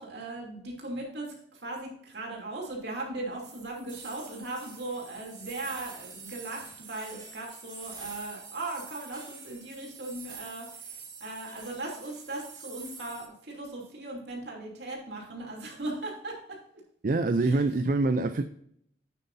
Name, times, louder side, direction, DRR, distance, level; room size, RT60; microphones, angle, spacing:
voice 1, 0.0-16.6 17.4-17.6, right 2 dB, 65° right, -2 dB, 3.0 m, -38 dB
sound 1, 3.4-13.3, right 5 dB, 25° right, 1.9 m, -46 dB
voice 2, 17.0-18.4, right 3 dB, 45° right, 9 dB, 0.4 m, -25 dB
9.1 x 7.8 x 2.7 m, 0.68 s
head